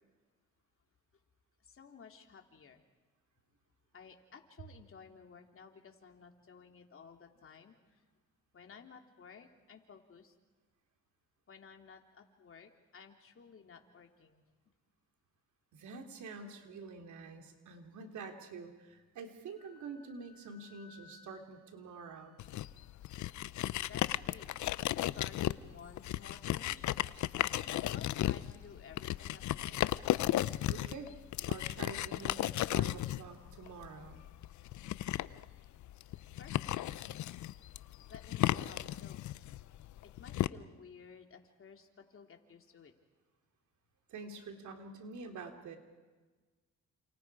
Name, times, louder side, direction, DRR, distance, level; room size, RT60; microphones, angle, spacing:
voice 1, 1.6-2.8 3.9-8.0 8.5-10.3 11.5-14.4 23.9-24.5 25.0-26.9 27.9-29.8 36.4-36.7 38.1-39.3 40.0-42.9, left 6 dB, 45° left, 3 dB, 3.2 m, -55 dB
voice 2, 15.7-22.4 30.7-31.1 31.5-34.2 44.1-45.8, right 4 dB, 75° right, 4 dB, 3.5 m, -47 dB
Wind instrument woodwind instrument, 19.5-23.0, left 6 dB, 90° left, 5.0 m, -62 dB
sound 1, 22.4-40.5, left 14 dB, 75° left, 0.7 m, -35 dB
30.0 x 28.0 x 4.9 m, 1.3 s
cardioid pair, 90°, 30 cm